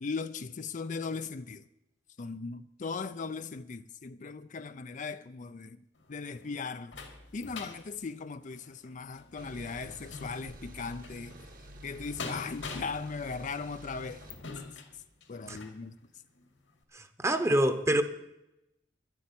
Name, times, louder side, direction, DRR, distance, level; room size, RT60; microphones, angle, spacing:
voice 1, 0.0-1.6 2.2-5.8 6.1-6.9 7.3-11.4 11.8-14.2 15.3-16.0, left 4 dB, 40° left, 0.5 m, -38 dB
sound 1, 6.0-15.8 16.4-16.5 16.8-16.9, left 4 dB, 85° left, 2.6 m, -46 dB
sound 2, 9.4-14.4, right 1 dB, 50° right, 1.5 m, -49 dB
voice 2, 16.9-18.0, right 1 dB, 15° right, 1.0 m, -26 dB
11.5 x 8.4 x 9.6 m
head